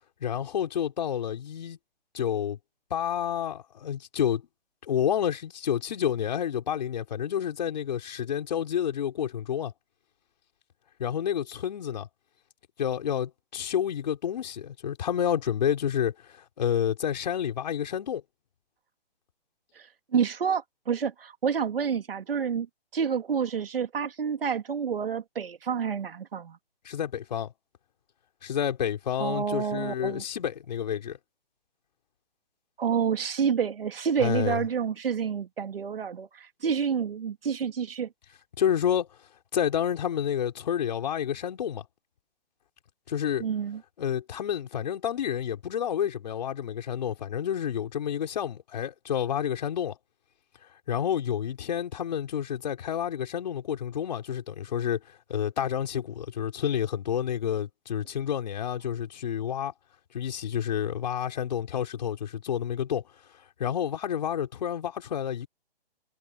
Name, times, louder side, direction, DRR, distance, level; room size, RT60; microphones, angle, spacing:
voice 1, 0.2-1.8 2.1-2.6 2.9-4.4 4.8-9.7 11.0-12.1 12.8-18.2 26.9-27.5 28.4-31.2 34.2-34.6 38.6-39.1 39.5-41.8 43.1-43.5 44.0-50.0 50.9-55.0 55.3-59.7 60.1-63.0 63.6-65.5, left 9 dB, 45° left, 5.4 m, -29 dB
voice 2, 19.7-22.7 22.9-26.6 29.2-30.2 32.8-38.1 43.4-43.8, right 7 dB, 65° right, 2.9 m, -29 dB
hypercardioid pair, 170°, 30 cm